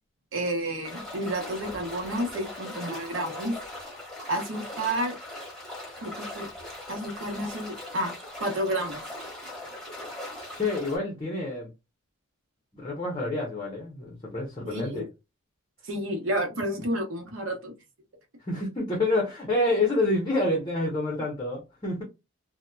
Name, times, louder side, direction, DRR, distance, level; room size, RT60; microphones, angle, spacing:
voice 1, 0.3-3.5 4.3-5.2 6.0-6.5 6.9-8.1 8.4-9.0 14.6-15.1 15.8-17.7, right 1 dB, 65° right, 0.9 m, -30 dB
sound 1, 0.8-11.0, left 1 dB, ahead, 1.1 m, -40 dB
voice 2, 10.6-11.7 12.8-15.0 18.5-22.0, left 2 dB, 20° left, 0.7 m, -28 dB
2.7 x 2.1 x 2.2 m
head